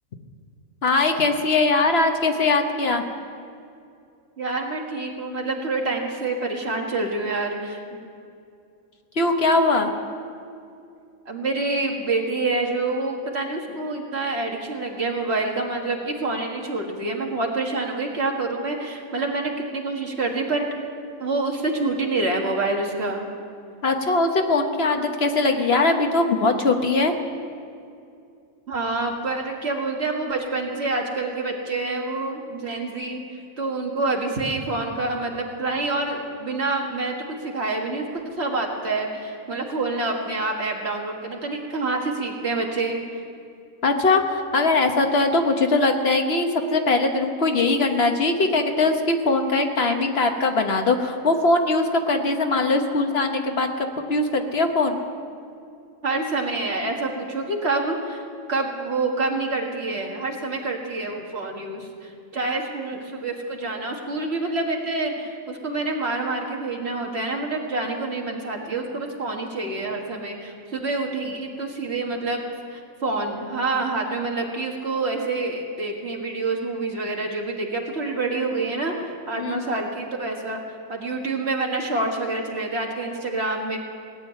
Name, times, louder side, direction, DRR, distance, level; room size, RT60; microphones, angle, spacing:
voice 1, 0.8-3.0 9.2-9.9 23.8-27.1 43.8-55.0 79.4-79.6, left 3 dB, 50° left, 4 dB, 1.3 m, -21 dB
voice 2, 4.4-7.8 11.3-20.7 21.2-23.3 28.7-43.0 56.0-72.4 72.7-80.6 80.9-83.8, right 3 dB, 50° right, 0 dB, 1.9 m, -27 dB
18.0 x 7.6 x 9.9 m, 2.4 s
omnidirectional pair, 1.5 m